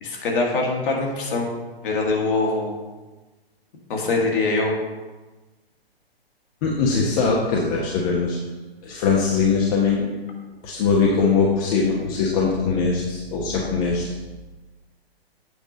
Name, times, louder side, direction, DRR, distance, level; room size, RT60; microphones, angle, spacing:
voice 1, 0.0-1.5 1.8-2.8 3.9-4.7, left 3 dB, 55° left, 0 dB, 1.8 m, -23 dB
voice 2, 6.6-8.4 8.8-10.1 10.6-14.0, left 5 dB, 35° left, -3 dB, 1.0 m, -21 dB
8.0 x 3.7 x 5.0 m, 1.2 s
hypercardioid pair, 125°, 31 cm